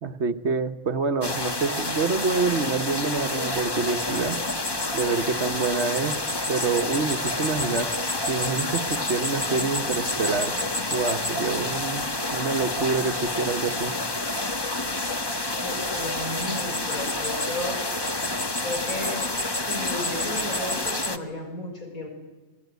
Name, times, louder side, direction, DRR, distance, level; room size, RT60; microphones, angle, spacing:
voice 1, 0.0-4.4 4.9-6.2 6.5-7.9 8.3-10.5 10.9-13.9, right 4 dB, 55° right, 9 dB, 1.3 m, -27 dB
sound 1, 1.2-21.2, left 2 dB, 20° left, 1.1 m, -28 dB
voice 2, 15.6-17.8 18.6-22.1, left 1 dB, 75° left, 2 dB, 6.3 m, -34 dB
27.5 x 21.0 x 9.4 m, 1.2 s
omnidirectional pair, 1.5 m